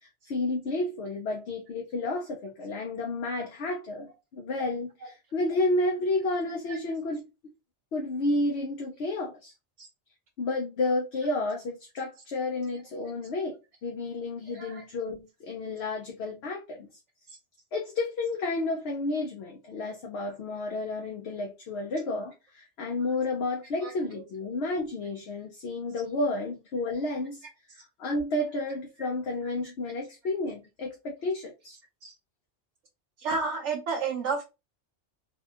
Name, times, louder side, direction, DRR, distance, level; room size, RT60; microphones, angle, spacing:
voice 1, 0.0-7.3 7.9-9.5 10.4-16.9 17.7-27.4 27.7-31.8, left 2 dB, 70° left, 1.0 m, -31 dB
voice 2, 14.5-14.8 23.8-23.9 32.0-32.1 33.2-34.4, right 4 dB, 85° right, 1.1 m, -31 dB
4.0 x 2.3 x 2.9 m
omnidirectional pair, 1.2 m